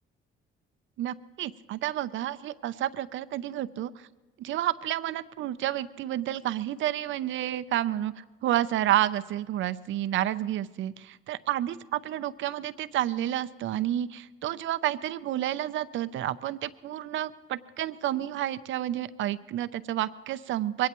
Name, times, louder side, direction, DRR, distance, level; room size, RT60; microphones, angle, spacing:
voice 1, 1.0-4.1 4.4-8.1 8.4-20.9, right 12 dB, 75° right, 14 dB, 0.6 m, -30 dB
22.5 x 18.0 x 3.1 m, 1.1 s
cardioid pair, 90°, 20 cm